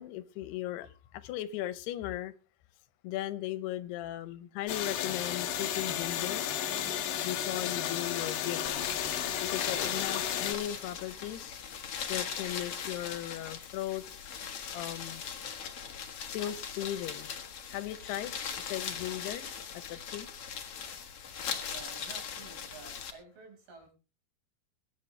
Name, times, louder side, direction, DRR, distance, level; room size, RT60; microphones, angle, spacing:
voice 1, 0.0-2.3 3.0-6.4 7.2-8.7 9.4-11.6 12.1-14.0 14.7-15.2 16.3-17.3 17.7-19.5 19.7-20.3, left 13 dB, 85° left, 2.9 m, -37 dB
sound 1, 4.7-10.5, left 10 dB, 65° left, 2.5 m, -33 dB
sound 2, 8.6-23.1, left 7 dB, 50° left, 2.1 m, -39 dB
voice 2, 21.7-23.9, right 5 dB, 70° right, 7.2 m, -51 dB
22.5 x 10.5 x 3.3 m
omnidirectional pair, 4.6 m